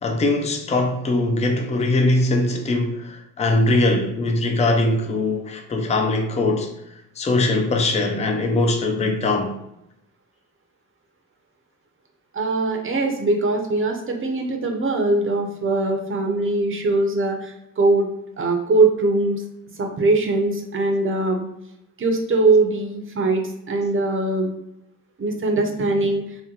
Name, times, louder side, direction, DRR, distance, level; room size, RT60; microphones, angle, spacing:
voice 1, 0.0-6.8 7.2-9.6, left 2 dB, 20° left, 0.4 m, -21 dB
voice 2, 12.3-18.1 18.4-19.4 19.8-21.5 22.0-24.5 25.2-26.2, right 2 dB, 40° right, 0.6 m, -21 dB
2.8 x 2.1 x 3.7 m
cardioid pair, 105°, 33 cm